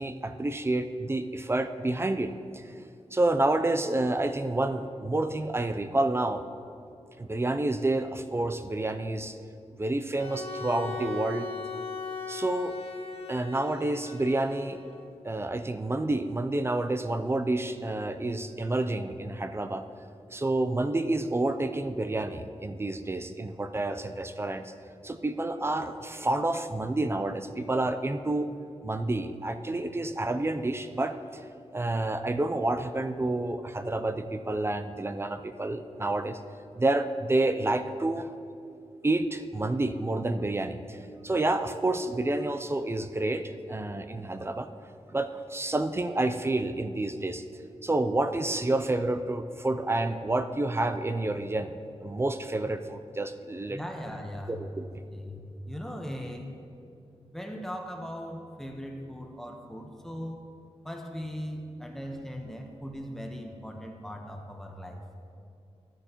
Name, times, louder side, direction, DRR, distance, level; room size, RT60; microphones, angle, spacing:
voice 1, 0.0-2.7 3.1-6.4 7.2-9.4 9.8-11.5 12.3-12.7 13.3-14.8 15.2-19.9 20.3-24.7 25.0-28.5 28.8-31.2 31.7-36.4 36.8-38.3 39.0-41.0 41.2-44.7 45.1-47.4 47.8-51.7 52.0-53.8 54.5-54.9, right 2 dB, 20° right, 9 dB, 0.4 m, -29 dB
Bowed string instrument, 10.1-15.1, left 5 dB, 60° left, 0.8 m, -39 dB
voice 2, 53.7-54.6 55.0-56.5 57.3-60.4 60.8-65.0, equal, 5° left, 2 dB, 1.0 m, -39 dB
13.0 x 10.0 x 3.0 m, 2.5 s
wide cardioid pair, 115°, 11 cm